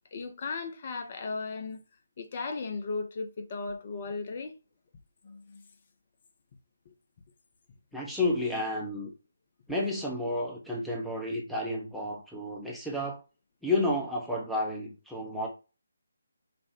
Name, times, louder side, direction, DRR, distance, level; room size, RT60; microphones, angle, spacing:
voice 1, 0.1-1.8 2.2-4.5 5.2-5.6 6.9-7.0, left 4 dB, 40° left, 0.7 m, -36 dB
voice 2, 7.9-9.1 9.7-13.2 13.6-15.5, left 2 dB, ahead, 0.7 m, -31 dB
5.1 x 2.2 x 2.8 m
figure-of-eight pair, 145°, 0 cm